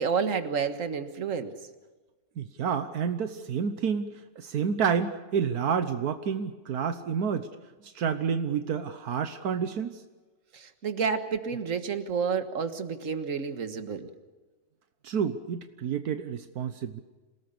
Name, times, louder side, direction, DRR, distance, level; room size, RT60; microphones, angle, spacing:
voice 1, 0.0-1.5 10.5-14.1, right 6 dB, 55° right, 9 dB, 1.9 m, -30 dB
voice 2, 2.4-7.5 7.8-10.0 15.0-17.0, right 7 dB, 80° right, 9 dB, 1.5 m, -29 dB
27.5 x 18.5 x 6.9 m, 1.3 s
omnidirectional pair, 1.6 m